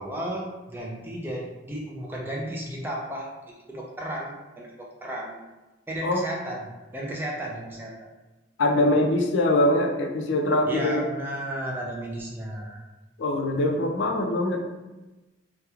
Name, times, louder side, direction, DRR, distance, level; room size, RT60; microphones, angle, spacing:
voice 1, 0.0-5.4 5.9-8.1 10.7-12.8, right 1 dB, 10° right, -2 dB, 0.3 m, -34 dB
voice 2, 8.6-11.0 13.2-14.6, left 1 dB, 80° left, 3 dB, 0.4 m, -23 dB
2.9 x 2.1 x 2.3 m, 1.1 s
head